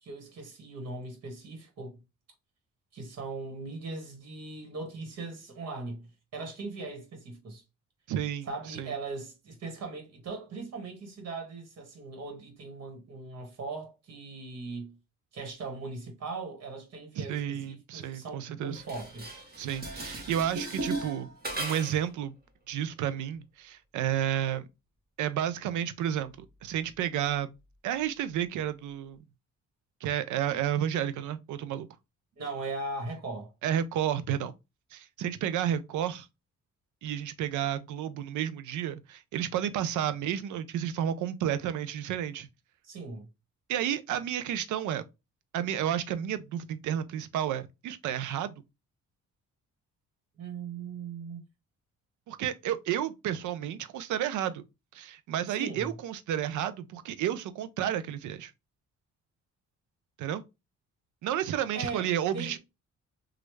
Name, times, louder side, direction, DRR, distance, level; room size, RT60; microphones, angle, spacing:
voice 1, 0.0-2.0 2.9-6.1 6.3-7.6 8.5-14.9 15.3-19.3 32.4-33.5 42.8-43.3 50.4-51.4 55.6-55.9 61.7-62.5, right 3 dB, 55° right, 1.6 m, -39 dB
voice 2, 8.1-8.9 17.2-18.8 19.6-21.3 21.6-22.3 22.7-24.7 25.2-27.5 27.8-29.2 30.0-31.9 33.6-34.5 34.9-36.3 37.0-42.5 43.7-45.0 45.5-48.5 52.3-54.6 54.9-58.5 60.2-60.4 61.2-62.6, right 10 dB, 80° right, 0.5 m, -31 dB
Dishes pots and pans, 18.7-22.1, right 2 dB, 30° right, 1.2 m, -37 dB
3.1 x 2.4 x 3.1 m
cardioid pair, 90°, 30 cm